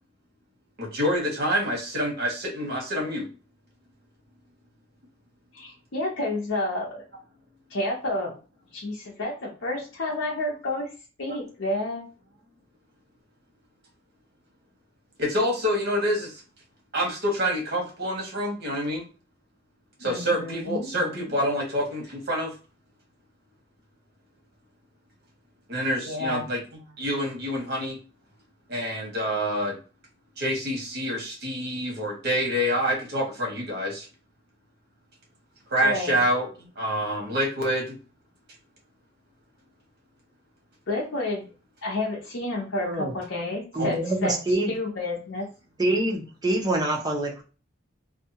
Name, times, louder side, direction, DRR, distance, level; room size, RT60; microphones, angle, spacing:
voice 1, 0.8-3.3 15.2-16.3 16.9-19.0 20.0-22.5 25.7-26.6 27.0-28.0 28.7-29.8 30.4-34.1 35.7-38.0 43.7-43.9, equal, 55° right, 0 dB, 1.1 m, -27 dB
voice 2, 5.5-7.1 7.7-8.3 8.7-10.9 11.2-12.0 20.0-20.9 26.0-26.4 35.8-36.2 40.9-41.5 41.8-44.4 44.7-45.5, left 2 dB, 75° left, -3 dB, 0.7 m, -30 dB
voice 3, 42.8-43.1 43.7-44.7 45.8-47.4, right 1 dB, 20° right, 0 dB, 0.7 m, -25 dB
2.6 x 2.3 x 2.7 m, 0.34 s
head